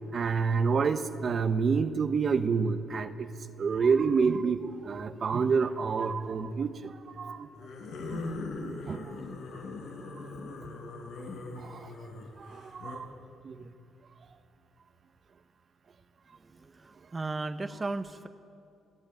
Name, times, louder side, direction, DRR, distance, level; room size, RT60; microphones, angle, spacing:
voice 1, 0.1-3.3 3.6-7.5 8.1-8.2 8.8-9.2 11.5-11.9 12.4-13.1 13.4-13.7, right 5 dB, 50° right, 8 dB, 1.2 m, -28 dB
sound 1, 3.6-4.0 5.6-6.1 7.5-13.0, left 3 dB, 80° left, 5.5 m, -41 dB
voice 2, 16.4-18.3, right 3 dB, 25° right, 7 dB, 1.1 m, -36 dB
27.5 x 16.5 x 9.3 m, 2.6 s
cardioid pair, 90°, 0 cm